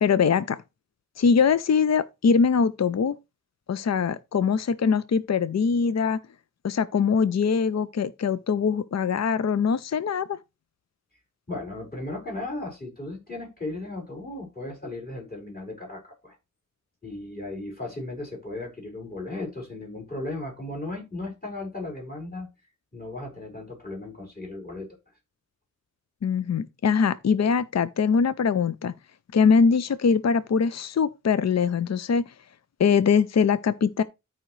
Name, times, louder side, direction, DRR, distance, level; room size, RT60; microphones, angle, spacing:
voice 1, 0.0-0.6 1.2-3.2 3.7-6.2 6.6-10.4 26.2-28.9 29.3-32.3 32.8-34.0, left 6 dB, 60° left, 0.5 m, -22 dB
voice 2, 11.5-16.3 17.0-22.5 22.9-24.9, left 2 dB, 30° left, 4.9 m, -36 dB
12.5 x 4.9 x 3.2 m
wide cardioid pair, 65°, 31 cm